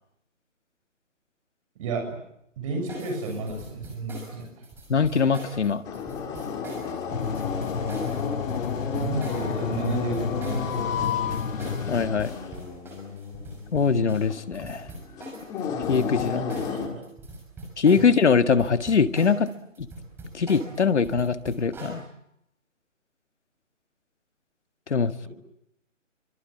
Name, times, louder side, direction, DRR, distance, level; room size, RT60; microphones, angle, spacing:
voice 1, 1.8-2.2 2.6-4.6 8.9-11.3 16.5-17.0 25.2-25.3, right 3 dB, 25° right, 4 dB, 7.1 m, -32 dB
sound 1, 2.9-18.2 18.5-22.0, right 2 dB, 5° right, 5.8 m, -42 dB
voice 2, 4.9-5.8 11.9-12.4 13.7-14.9 15.9-16.5 17.8-19.5 19.8-19.9 20.3-22.0 24.9-25.3, left 5 dB, 60° left, 10 dB, 1.8 m, -22 dB
sound 2, 5.8-16.9, left 7 dB, 10° left, 1.9 m, -32 dB
sound 3, 7.1-12.1, left 5 dB, 80° left, 1.2 m, -31 dB
28.0 x 24.5 x 8.5 m, 0.78 s
figure-of-eight pair, 160°, 38 cm